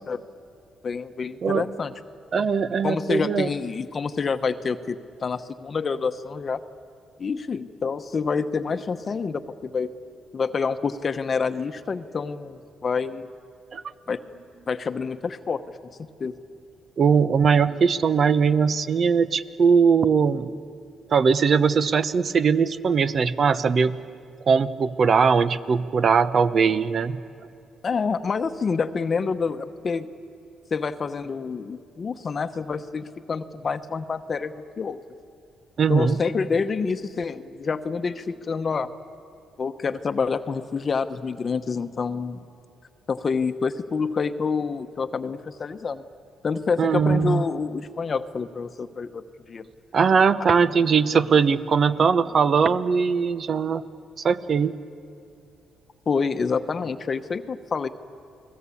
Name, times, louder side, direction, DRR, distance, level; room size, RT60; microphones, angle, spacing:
voice 1, 0.8-1.9 2.8-6.6 7.2-9.9 10.3-13.3 14.1-14.2 14.7-15.8 16.2-16.3 27.8-30.1 30.7-35.0 35.9-38.9 39.6-42.4 43.1-46.0 46.4-49.7 56.1-57.9, left 5 dB, 40° left, 9 dB, 1.0 m, -27 dB
voice 2, 2.3-3.5 13.7-13.8 17.0-20.5 21.1-24.0 24.5-27.2 35.8-36.2 46.8-47.4 49.9-53.8 54.2-54.7, right 6 dB, 50° right, 13 dB, 1.0 m, -20 dB
29.5 x 20.0 x 8.5 m, 2.6 s
cardioid pair, 90°, 0 cm